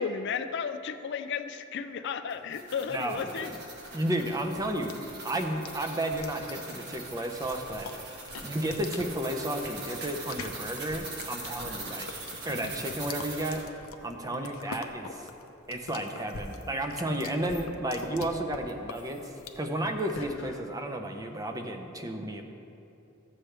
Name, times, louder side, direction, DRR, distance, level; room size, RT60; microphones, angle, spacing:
voice 1, 0.0-3.5 8.3-8.5 11.8-12.0 14.3-14.5, left 6 dB, 55° left, 10 dB, 0.4 m, -34 dB
sound 1, 2.3-13.7, right 3 dB, 50° right, 1.5 m, -42 dB
voice 2, 2.9-3.6 3.9-5.0 5.2-7.9 8.4-12.1 12.4-13.6 14.0-15.3 15.7-22.4, right 1 dB, 15° right, 4 dB, 0.7 m, -32 dB
sound 2, 3.6-20.6, left 4 dB, 85° left, 0.7 m, -45 dB
14.0 x 7.5 x 3.3 m, 2.8 s
head